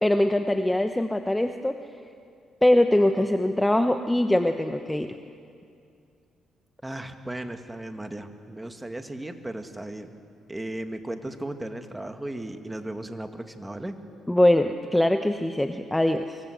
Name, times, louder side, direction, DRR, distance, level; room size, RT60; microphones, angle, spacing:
voice 1, 0.0-1.8 2.6-5.2 14.3-16.4, left 1 dB, 10° left, 7 dB, 1.0 m, -22 dB
voice 2, 6.8-10.1 10.5-14.0, right 1 dB, 10° right, 7 dB, 2.0 m, -36 dB
24.5 x 23.5 x 8.0 m, 2.4 s
cardioid pair, 90°, 0 cm